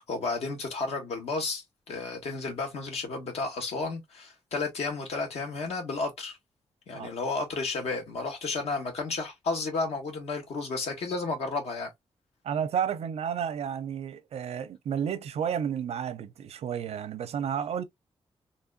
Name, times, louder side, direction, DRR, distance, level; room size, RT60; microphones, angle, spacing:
voice 1, 0.0-6.4 6.9-11.9, left 3 dB, 80° left, 2.0 m, -32 dB
voice 2, 12.4-17.8, right 8 dB, 90° right, 0.7 m, -31 dB
4.2 x 3.1 x 2.4 m
wide cardioid pair, 125°, 11 cm